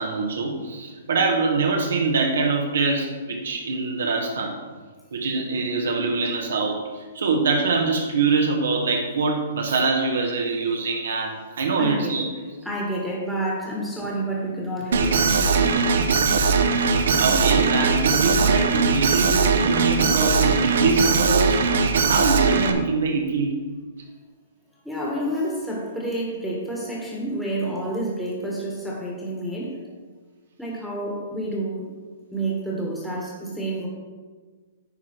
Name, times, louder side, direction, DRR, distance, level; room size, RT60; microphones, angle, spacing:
voice 1, 0.0-4.6 5.1-12.2 17.2-21.7 22.1-23.6, right 4 dB, 85° right, 1 dB, 1.3 m, -24 dB
voice 2, 11.8-12.2 12.6-15.8 24.8-29.8 30.6-31.9 32.3-33.9, right 1 dB, ahead, -5 dB, 1.3 m, -29 dB
Alarm, 14.9-22.7, right 5 dB, 70° right, 0.8 m, -20 dB
9.6 x 4.9 x 4.5 m, 1.4 s
hypercardioid pair, 165°, 0 cm